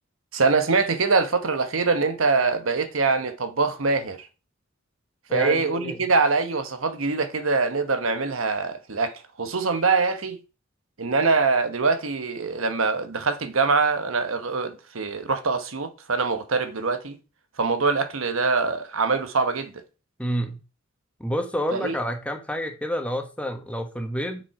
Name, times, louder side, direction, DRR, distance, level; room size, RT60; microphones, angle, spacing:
voice 1, 0.3-4.3 5.3-10.4 11.0-17.2 17.6-19.7 21.7-22.0, right 4 dB, 85° right, 1.1 m, -24 dB
voice 2, 5.3-6.0 20.2-20.6 21.2-24.4, equal, 5° left, 1.3 m, -29 dB
7.0 x 6.3 x 4.8 m
head